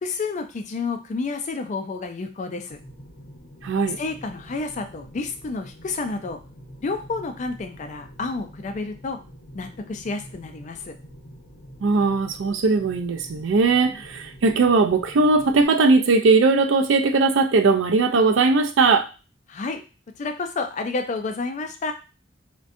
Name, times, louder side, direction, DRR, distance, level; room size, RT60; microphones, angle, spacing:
voice 1, 0.0-2.8 4.0-6.4 6.8-9.2 9.5-10.9 13.9-14.0 19.5-19.8 20.2-21.9, left 3 dB, 40° left, 6 dB, 0.4 m, -30 dB
sound 1, 2.7-15.7, equal, 75° left, 0.8 m, -46 dB
voice 2, 3.6-4.0 11.8-19.1, right 3 dB, 80° right, 7 dB, 0.4 m, -19 dB
2.6 x 2.2 x 2.5 m, 0.31 s
head